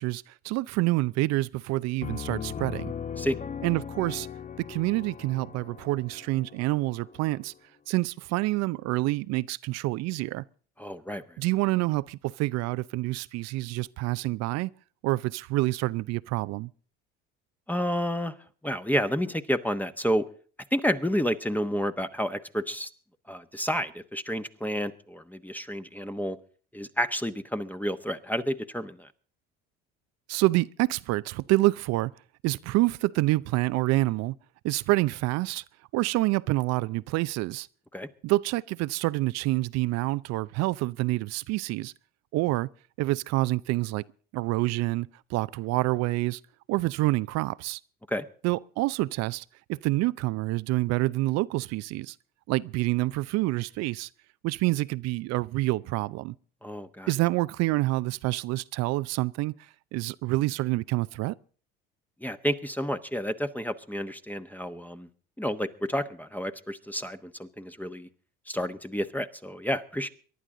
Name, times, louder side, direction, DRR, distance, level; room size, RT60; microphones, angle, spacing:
voice 1, 0.0-2.9 3.6-4.3 4.6-7.5 7.9-10.4 11.4-14.7 15.0-16.7 30.3-32.1 32.4-34.3 34.6-35.6 35.9-37.7 38.2-41.9 42.3-42.7 43.0-44.0 44.3-46.4 46.7-47.8 48.4-52.1 52.5-54.1 54.4-56.3 57.1-59.5 59.9-61.3, right 19 dB, 60° right, 0.6 m, -27 dB
Piano, 2.0-7.5, left 7 dB, 25° left, 0.7 m, -38 dB
voice 2, 10.8-11.2 17.7-18.3 18.6-20.2 20.7-22.9 23.3-26.4 26.7-29.1 37.9-38.1 48.1-48.2 56.6-57.1 62.2-65.1 65.4-68.1 68.5-70.1, equal, 5° left, 1.1 m, -30 dB
24.0 x 11.0 x 3.8 m
hypercardioid pair, 70°, 29 cm